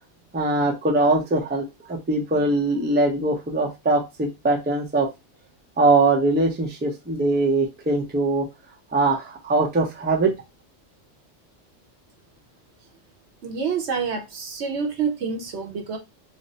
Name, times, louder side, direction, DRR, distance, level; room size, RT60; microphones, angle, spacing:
voice 1, 0.3-5.1 5.8-8.5 8.9-10.3, right 2 dB, 15° right, 1 dB, 0.5 m, -22 dB
voice 2, 13.4-16.0, right 5 dB, 65° right, 2 dB, 1.1 m, -27 dB
3.2 x 2.1 x 4.0 m, 0.23 s
omnidirectional pair, 1.3 m